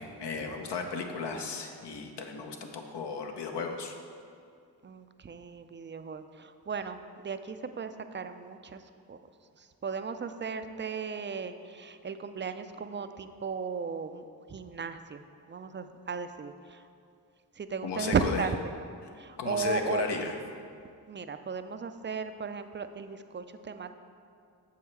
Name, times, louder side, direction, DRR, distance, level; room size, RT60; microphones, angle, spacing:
voice 1, 0.0-3.9 17.8-18.4 19.4-20.3, left 5 dB, 65° left, 3 dB, 1.0 m, -35 dB
voice 2, 4.8-9.2 9.6-16.9 17.5-18.7 19.1-20.0 21.1-23.9, right 5 dB, 25° right, 9 dB, 0.5 m, -36 dB
7.4 x 5.6 x 4.6 m, 2.4 s
supercardioid pair, 40°, 44 cm